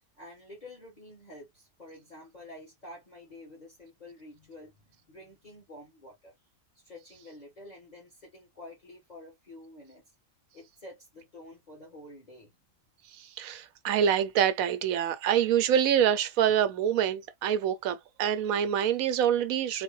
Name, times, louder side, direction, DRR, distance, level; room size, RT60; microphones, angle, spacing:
voice 1, 0.2-6.3 6.7-10.0 10.5-12.5, left 1 dB, 30° left, 1.4 m, -49 dB
voice 2, 13.4-19.8, right 9 dB, 80° right, 1.0 m, -26 dB
3.9 x 2.1 x 3.1 m
omnidirectional pair, 1.4 m